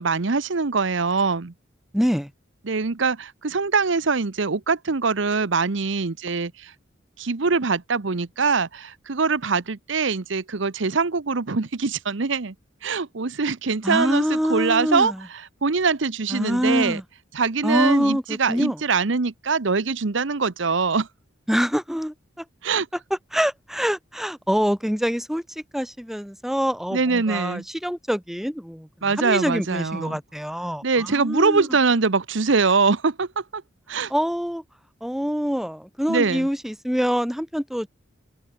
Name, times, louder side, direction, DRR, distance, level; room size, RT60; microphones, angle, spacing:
voice 1, 0.0-1.5 2.6-6.7 7.2-12.5 12.8-17.0 17.3-21.1 22.6-22.9 26.9-27.6 29.0-30.2 30.8-33.6 33.9-34.1 36.1-36.5, right 4 dB, 70° right, 0.9 m, -23 dB
voice 2, 1.9-2.3 13.8-15.2 16.3-17.0 17.6-18.8 21.5-22.1 23.3-25.4 25.7-28.9 29.2-31.7 34.1-34.6 35.0-37.9, equal, ahead, 1.2 m, -25 dB
head